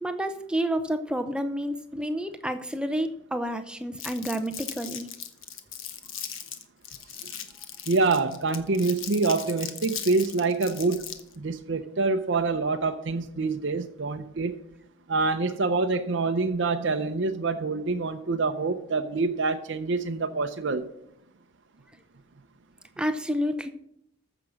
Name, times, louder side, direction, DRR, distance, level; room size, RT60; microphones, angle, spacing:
voice 1, 0.0-5.1 23.0-23.7, equal, 5° right, 0.6 m, -29 dB
Crumpling crinkling, 4.0-11.4, left 9 dB, 75° left, 1.1 m, -38 dB
voice 2, 7.9-11.1 11.4-14.6 15.1-20.9, right 3 dB, 60° right, 0.6 m, -26 dB
14.0 x 5.9 x 6.3 m
head